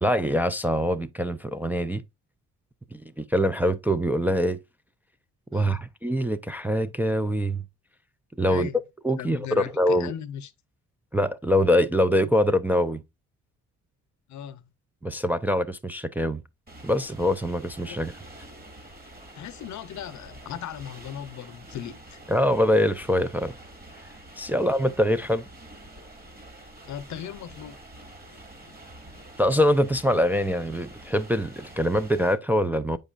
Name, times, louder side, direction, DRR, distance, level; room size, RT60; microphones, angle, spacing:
voice 1, 0.0-2.0 2.9-4.6 5.5-7.6 8.4-8.7 9.0-10.1 11.1-13.0 15.0-16.4 16.8-18.1 22.3-23.5 24.4-25.4 29.4-33.0, equal, 5° right, 0.3 m, -24 dB
voice 2, 5.5-5.8 8.5-8.8 9.1-10.5 14.3-14.6 17.9-18.0 19.3-22.2 24.5-24.6 26.8-27.8, left 10 dB, 70° left, 0.7 m, -38 dB
sound 1, 16.7-32.3, right 1 dB, 30° right, 2.2 m, -47 dB
8.0 x 5.3 x 2.5 m
cardioid pair, 90°, 30 cm